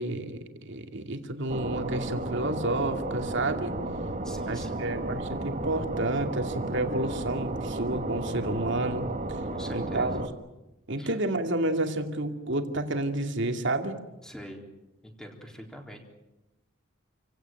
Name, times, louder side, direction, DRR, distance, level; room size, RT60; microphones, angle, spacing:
voice 1, 0.0-3.8 4.5-9.0 9.7-10.2 10.9-14.0, right 2 dB, 65° right, 6 dB, 2.6 m, -30 dB
sound 1, 1.5-10.3, right 2 dB, 40° right, 2.2 m, -33 dB
voice 2, 4.2-4.9 9.5-10.2 11.0-11.2 14.2-14.6 15.0-16.1, equal, 5° left, 2 dB, 4.0 m, -44 dB
28.5 x 17.0 x 9.2 m, 0.99 s
head